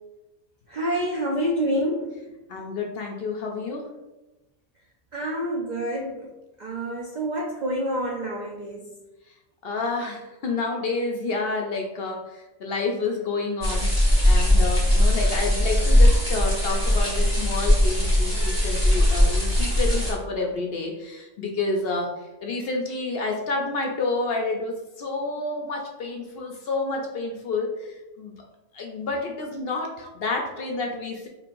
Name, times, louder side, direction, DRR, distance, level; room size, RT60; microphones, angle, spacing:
voice 1, 0.7-2.2 5.1-6.3 6.6-8.9, equal, 65° right, -2 dB, 0.4 m, -27 dB
voice 2, 2.5-3.9 9.3-9.4 9.6-28.3 28.7-31.3, left 3 dB, 60° left, 1 dB, 0.7 m, -29 dB
sound 1, 13.6-20.1, left 1 dB, 20° right, 1.1 m, -20 dB
4.4 x 3.1 x 2.5 m, 0.99 s
omnidirectional pair, 1.3 m